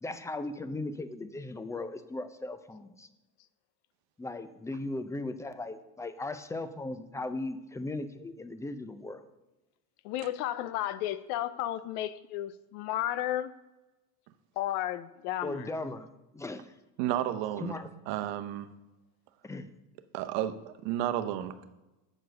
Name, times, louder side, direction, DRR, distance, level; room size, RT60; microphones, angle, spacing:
voice 1, 0.0-3.1 4.2-9.2 15.4-16.7 17.6-17.9 19.4-19.7, left 2 dB, 5° left, 11 dB, 0.4 m, -37 dB
voice 2, 10.0-13.5 14.6-15.7, left 13 dB, 70° left, 14 dB, 0.6 m, -33 dB
voice 3, 17.0-17.7 18.1-18.7 20.1-21.7, right 12 dB, 60° right, 10 dB, 0.8 m, -32 dB
7.7 x 4.6 x 6.2 m, 1.1 s
hypercardioid pair, 90°, 48 cm